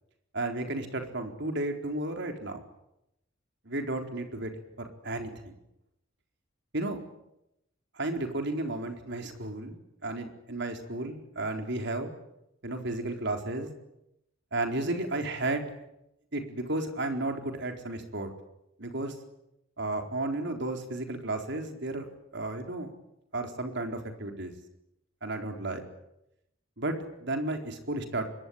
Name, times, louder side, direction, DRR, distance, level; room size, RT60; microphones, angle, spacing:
voice 1, 0.3-2.6 3.6-4.5 4.8-5.5 6.7-7.0 8.0-12.1 12.6-13.7 14.5-15.6 16.3-18.3 18.8-19.1 19.8-22.1 22.3-22.9 23.3-24.5 25.2-25.8 26.8-28.3, right 2 dB, 60° right, 5 dB, 4.3 m, -33 dB
25.5 x 22.0 x 9.6 m, 0.84 s
head